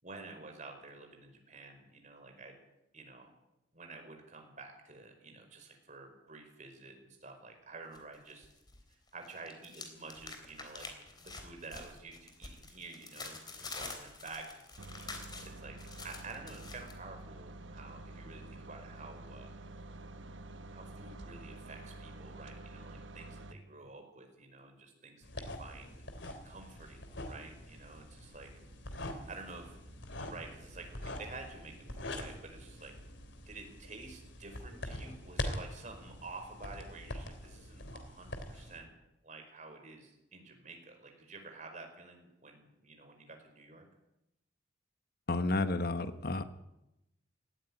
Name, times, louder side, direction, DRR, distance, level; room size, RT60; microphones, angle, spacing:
voice 1, 0.0-2.6 2.9-3.3 3.7-8.5 8.9-10.9 11.2-14.8 15.4-15.8 16.0-19.5 20.7-26.0 26.4-28.5 29.0-29.8 30.3-32.9 33.5-38.9 39.2-43.8, right 3 dB, 40° right, 4 dB, 4.9 m, -50 dB
sound 1, 7.9-8.8 9.1-16.9, left 3 dB, 20° left, 3.5 m, -47 dB
sound 2, 14.8-23.5, right 2 dB, 85° right, 1.4 m, -48 dB
sound 3, 25.2-38.8, left 1 dB, 75° left, 3.2 m, -44 dB
voice 2, 45.3-46.4, left 2 dB, 55° left, 11 dB, 1.1 m, -31 dB
18.0 x 15.0 x 10.0 m, 0.89 s
head